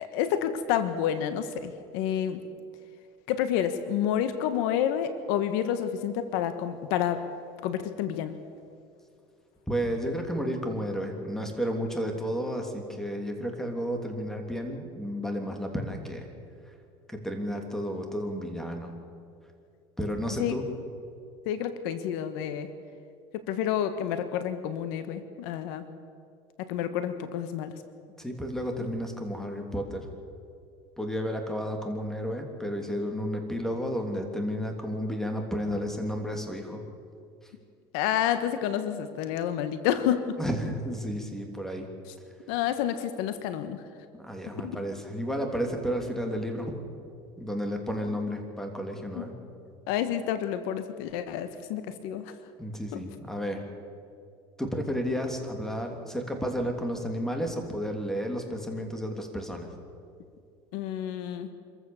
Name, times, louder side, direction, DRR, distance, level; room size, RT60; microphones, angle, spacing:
voice 1, 0.0-2.4 3.3-7.2 7.6-8.3 20.4-20.5 21.4-22.7 23.3-25.8 26.6-27.7 37.9-40.3 42.5-43.8 44.6-44.8 49.1-49.3 49.9-52.2 52.9-53.0 60.7-61.5, left 10 dB, 80° left, 11 dB, 1.4 m, -29 dB
voice 2, 9.7-16.3 17.1-19.0 20.0-20.6 28.2-30.1 31.0-36.8 40.4-41.9 44.2-46.8 47.4-49.3 52.6-53.6 54.6-59.7, equal, 5° left, 3 dB, 3.0 m, -32 dB
26.0 x 14.5 x 7.1 m, 2.4 s
supercardioid pair, 115°, 12 cm